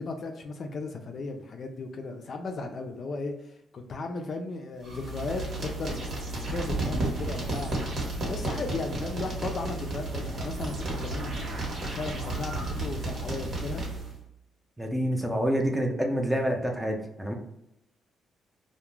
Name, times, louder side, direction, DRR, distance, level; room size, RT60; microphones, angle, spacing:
voice 1, 0.0-7.7 8.3-13.9, left 3 dB, 50° left, 4 dB, 0.3 m, -36 dB
sound 1, 4.8-14.2, right 2 dB, 60° right, 1.0 m, -32 dB
voice 2, 14.8-17.3, equal, 5° right, 2 dB, 0.5 m, -27 dB
2.3 x 2.1 x 3.0 m, 0.81 s
cardioid pair, 90°, 0 cm